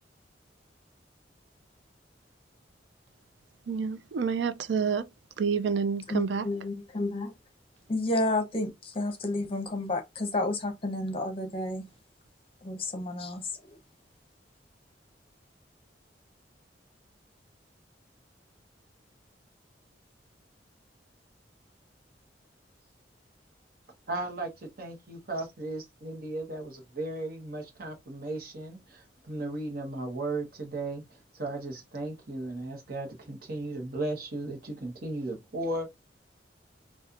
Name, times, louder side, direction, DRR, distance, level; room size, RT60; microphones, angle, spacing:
voice 1, 3.7-5.1 5.4-6.5, right 6 dB, 75° right, 0.4 m, -28 dB
voice 2, 6.1-7.3 7.9-11.9 12.6-13.8, left 2 dB, 30° left, 0.8 m, -31 dB
voice 3, 24.1-36.0, right 2 dB, 55° right, 1.2 m, -36 dB
4.2 x 2.4 x 2.5 m
head